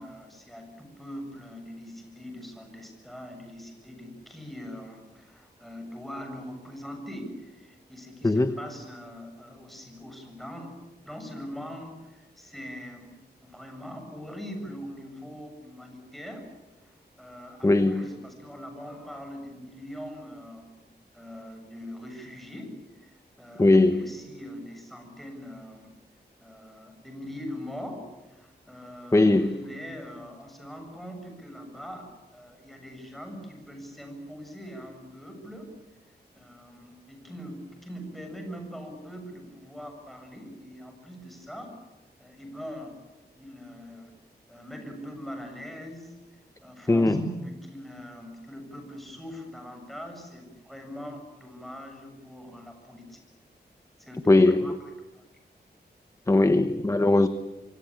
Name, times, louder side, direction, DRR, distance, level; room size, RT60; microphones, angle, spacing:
voice 1, 0.0-10.7 11.0-13.1 13.4-16.5 16.8-20.7 21.1-25.9 26.4-35.7 36.1-41.8 42.2-43.0 43.4-44.1 44.5-53.2 54.0-55.3, equal, ahead, 3 dB, 7.3 m, -42 dB
voice 2, 8.2-8.5 17.6-18.1 23.6-24.1 29.1-29.6 46.9-47.2 54.3-54.8 56.3-57.3, left 2 dB, 15° left, 11 dB, 1.0 m, -20 dB
27.0 x 24.0 x 8.8 m, 1.1 s
wide cardioid pair, 135°, 17 cm